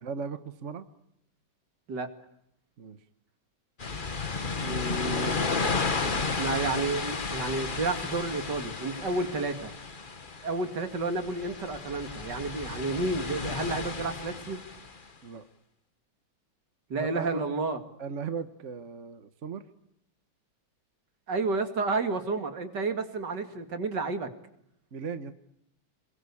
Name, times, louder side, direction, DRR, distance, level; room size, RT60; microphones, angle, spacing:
voice 1, 0.0-0.8 2.8-3.0 15.2-15.5 17.0-17.4 18.0-19.7 24.9-25.3, right 5 dB, 45° right, 11 dB, 1.3 m, -37 dB
sound 1, 3.8-15.0, left 4 dB, 30° left, 1.4 m, -33 dB
voice 2, 4.6-5.4 6.3-9.7 10.4-14.6 16.9-17.8 21.3-24.3, right 3 dB, 60° right, 8 dB, 2.8 m, -31 dB
27.0 x 22.0 x 8.4 m, 0.76 s
omnidirectional pair, 2.1 m